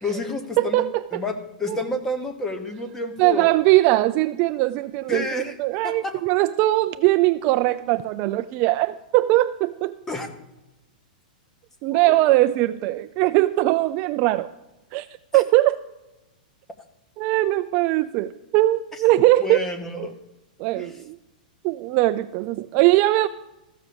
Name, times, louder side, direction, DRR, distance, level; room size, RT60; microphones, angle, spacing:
voice 1, 0.0-0.8 1.1-3.5 5.1-5.6 5.8-6.2 10.1-10.3 11.9-12.1 15.3-15.4 19.4-20.1 20.7-20.9, left 2 dB, 10° left, 7 dB, 1.1 m, -29 dB
voice 2, 0.6-1.2 1.7-1.8 3.2-10.0 11.8-14.5 14.9-15.1 15.3-15.8 17.2-19.6 20.0-20.1 20.6-21.2 21.6-23.3, right 17 dB, 30° right, 11 dB, 0.3 m, -20 dB
14.0 x 6.2 x 6.9 m, 1.0 s
supercardioid pair, 165°, 5 cm